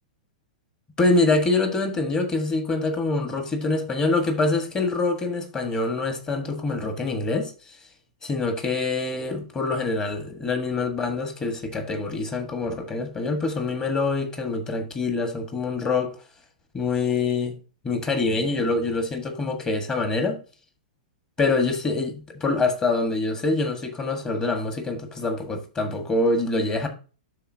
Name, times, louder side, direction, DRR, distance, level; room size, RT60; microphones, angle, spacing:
voice 1, 1.0-7.5 8.2-16.1 16.7-17.5 17.8-20.4 21.4-26.9, left 3 dB, 15° left, 1.7 m, -25 dB
12.5 x 4.2 x 2.8 m
hypercardioid pair, 145°, 5 cm